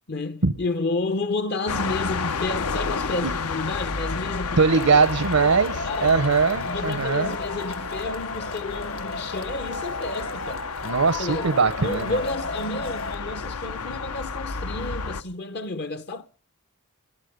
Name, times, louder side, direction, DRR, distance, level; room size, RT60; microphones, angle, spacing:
voice 1, 0.1-5.0 5.4-6.3 6.6-10.6 11.2-11.5 11.8-16.3, left 2 dB, 50° left, 0.7 m, -31 dB
sound 1, 1.7-15.2, left 5 dB, 85° left, 0.9 m, -31 dB
voice 2, 4.6-7.4 10.8-12.2, right 4 dB, 80° right, 0.9 m, -21 dB
Male speech man speaking / Shout / Clapping, 4.7-13.1, left 3 dB, 65° left, 1.3 m, -34 dB
21.0 x 12.0 x 5.2 m
head